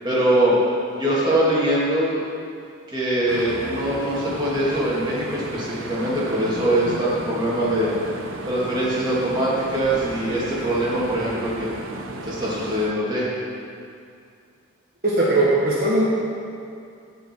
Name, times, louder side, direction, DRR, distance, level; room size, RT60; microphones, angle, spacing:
voice 1, 0.0-0.6 1.0-2.2 2.9-7.9 8.5-13.3, right 1 dB, 20° right, -8 dB, 2.3 m, -23 dB
sound 1, 3.3-12.9, right 2 dB, 75° right, 0.7 m, -34 dB
voice 2, 15.0-16.0, right 2 dB, 45° right, -7 dB, 1.4 m, -19 dB
15.5 x 5.3 x 4.6 m, 2.4 s
head